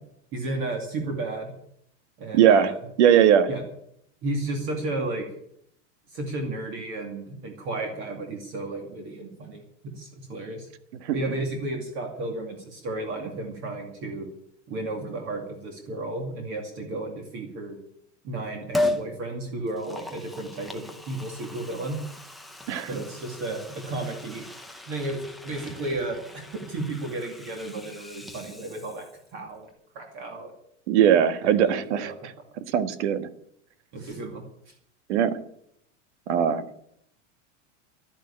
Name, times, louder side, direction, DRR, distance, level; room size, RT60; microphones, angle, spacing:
voice 1, 0.3-1.5 2.2-2.8 3.5-3.6 4.2-5.3 6.1-10.7 11.1-14.3 14.7-17.8 18.2-22.0 22.9-24.4 24.9-29.0 29.3-29.7 29.9-30.5 31.4-32.1 33.9-34.7, right 2 dB, 35° right, 3 dB, 2.4 m, -33 dB
voice 2, 2.3-2.7 3.0-3.5 11.0-11.1 22.7-22.9 30.9-32.3 32.7-33.3 35.1-35.4 36.3-36.6, right 9 dB, 70° right, 12 dB, 1.5 m, -20 dB
Liquid, 18.7-19.1 19.7-29.3 29.6-29.7, left 2 dB, ahead, 0.6 m, -36 dB
12.0 x 10.5 x 9.9 m, 0.71 s
supercardioid pair, 175°, 36 cm